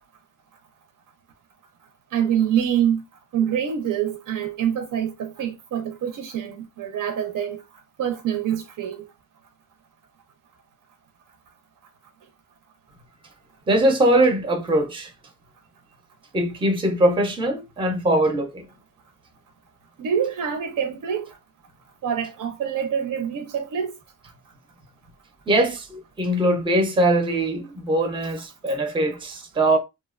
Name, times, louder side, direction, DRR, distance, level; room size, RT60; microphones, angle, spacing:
voice 1, 2.1-3.0 3.3-7.6 8.0-9.0 20.0-21.3 22.0-24.0, right 9 dB, 70° right, 0.5 m, -25 dB
voice 2, 13.7-15.1 16.3-18.6 25.5-29.8, right 1 dB, 15° right, 0.4 m, -21 dB
2.7 x 2.1 x 2.3 m
wide cardioid pair, 140°, 33 cm